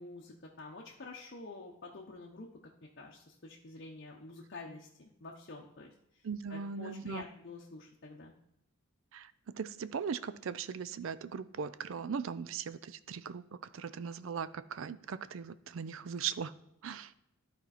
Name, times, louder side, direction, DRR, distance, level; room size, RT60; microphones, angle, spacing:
voice 1, 0.0-2.5 2.8-8.3, left 3 dB, 50° left, -2 dB, 0.8 m, -48 dB
voice 2, 6.2-7.2 9.1-9.3 9.6-13.4 13.7-16.5 16.8-17.1, right 6 dB, 65° right, 15 dB, 0.4 m, -39 dB
11.5 x 4.4 x 4.1 m, 0.82 s
head